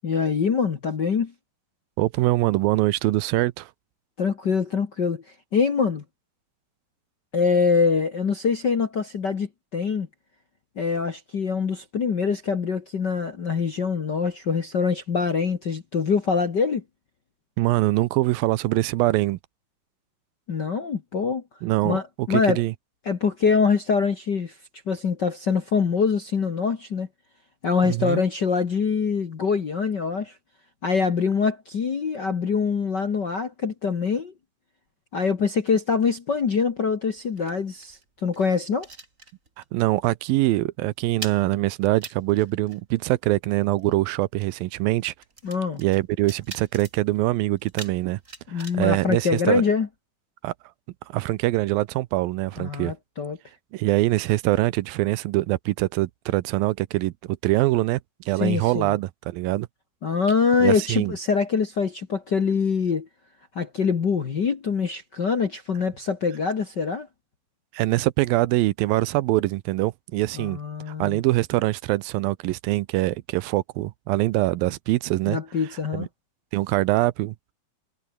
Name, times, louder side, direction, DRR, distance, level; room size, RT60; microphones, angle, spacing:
voice 1, 0.0-1.3 4.2-5.2 5.5-6.0 7.3-10.1 10.8-16.8 20.5-21.4 21.8-22.6 23.0-24.5 24.9-27.1 27.6-30.3 30.8-34.3 35.1-38.9 45.4-45.8 48.5-49.9 52.6-53.4 58.4-58.9 60.0-63.1 63.5-67.1 70.3-71.2 75.2-76.1, left 5 dB, 50° left, 1.3 m, -24 dB
voice 2, 2.0-3.7 17.6-19.4 21.6-22.7 27.8-28.2 39.6-45.1 45.8-48.2 48.5-49.6 50.4-50.5 51.1-52.9 53.7-58.0 58.3-59.7 60.6-61.1 67.7-70.6 71.0-75.4 75.9-76.1 76.5-77.4, right 18 dB, 85° right, 2.5 m, -23 dB
sound 1, 36.4-39.8 40.0-40.3 40.6-50.0, right 3 dB, 20° right, 4.0 m, -45 dB
omnidirectional pair, 4.2 m